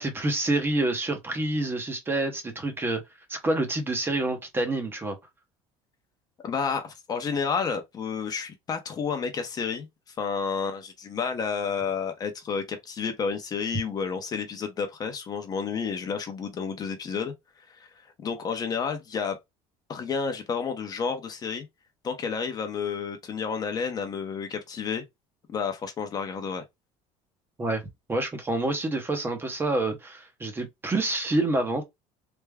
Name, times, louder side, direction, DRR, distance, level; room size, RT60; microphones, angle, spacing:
voice 1, 0.0-3.0 3.3-5.2 27.6-27.8 28.1-31.8, right 2 dB, 15° right, 0.7 m, -27 dB
voice 2, 6.4-9.9 10.2-17.3 17.7-17.9 18.2-19.4 19.9-21.7 22.0-25.0 25.5-26.6, left 6 dB, 30° left, 0.7 m, -30 dB
3.4 x 2.1 x 3.4 m
cardioid pair, 150°, 13 cm